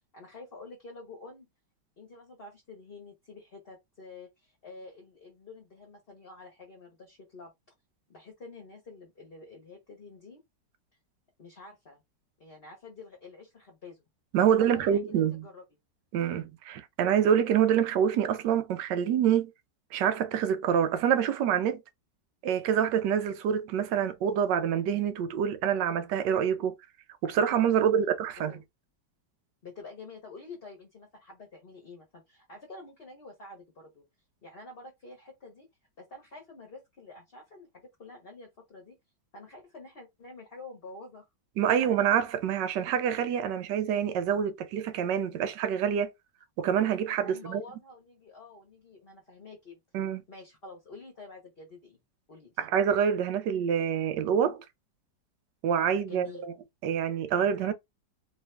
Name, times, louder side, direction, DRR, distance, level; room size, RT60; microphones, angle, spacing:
voice 1, 0.1-1.5 2.0-7.5 8.1-10.4 11.4-12.0 12.4-14.0 14.6-15.6 27.8-28.1 28.5-28.6 29.6-34.0 34.4-35.7 36.0-39.0 39.3-41.3 47.2-49.8 50.3-52.0 52.3-52.6 56.1-56.5, left 3 dB, 40° left, 1.1 m, -48 dB
voice 2, 14.3-15.5 16.1-19.5 19.9-21.8 22.4-26.7 27.2-28.6 41.6-46.1 46.6-47.6 49.9-50.2 52.6-54.6 55.6-56.5 56.8-57.7, right 8 dB, 80° right, 1.3 m, -26 dB
3.3 x 3.2 x 3.3 m
omnidirectional pair, 1.9 m